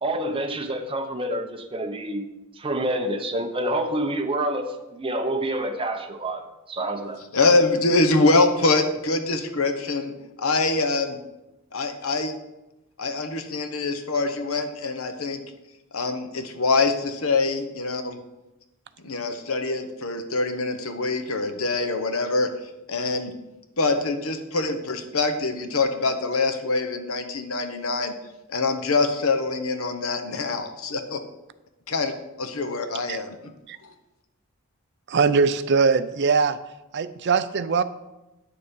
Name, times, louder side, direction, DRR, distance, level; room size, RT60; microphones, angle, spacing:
voice 1, 0.0-2.3 2.6-6.4 6.7-7.2, right 1 dB, 25° right, 5 dB, 0.9 m, -27 dB
voice 2, 7.3-11.2 11.7-12.3 13.0-15.4 15.9-18.2 19.0-22.5 22.9-23.3 23.8-28.1 28.5-31.2 31.9-32.1 32.4-33.5 33.8-33.9, left 3 dB, 80° left, 7 dB, 1.1 m, -24 dB
voice 3, 35.1-36.6 36.9-37.8, right 5 dB, 55° right, 13 dB, 0.5 m, -21 dB
9.3 x 6.7 x 5.3 m, 0.97 s
head